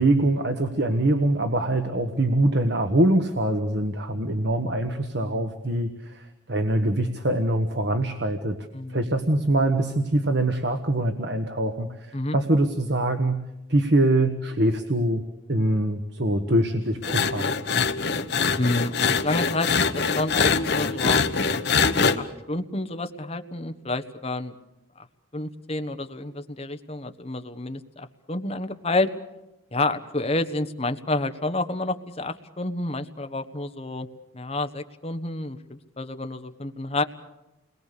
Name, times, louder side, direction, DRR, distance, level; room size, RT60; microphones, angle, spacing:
voice 1, 0.0-15.2 15.5-17.5, right 1 dB, 60° right, 6 dB, 1.5 m, -24 dB
voice 2, 8.7-9.0 12.1-12.4 18.6-21.2 21.8-24.5 25.0-25.1 25.3-29.1 29.7-34.1 34.3-37.0, left 2 dB, 30° left, 8 dB, 1.3 m, -29 dB
sound 1, 17.0-22.2, left 5 dB, 55° left, 1.2 m, -23 dB
29.5 x 21.5 x 6.8 m, 0.97 s
head